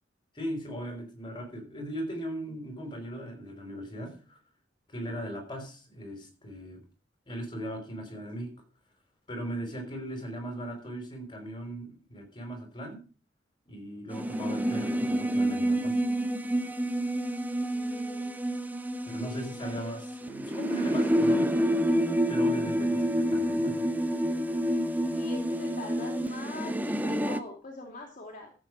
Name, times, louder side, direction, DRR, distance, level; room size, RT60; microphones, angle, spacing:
voice 1, 0.3-4.4 4.9-6.8 7.3-8.5 9.3-13.0 13.7-16.0 19.1-21.7 22.3-23.9, equal, 25° left, 4.8 m, -38 dB
sound 1, 14.1-27.4, equal, 10° right, 0.9 m, -28 dB
voice 2, 17.7-18.4 19.2-19.9 24.7-24.8 25.1-28.5, left 2 dB, 45° left, 2.6 m, -43 dB
14.0 x 8.1 x 4.8 m
head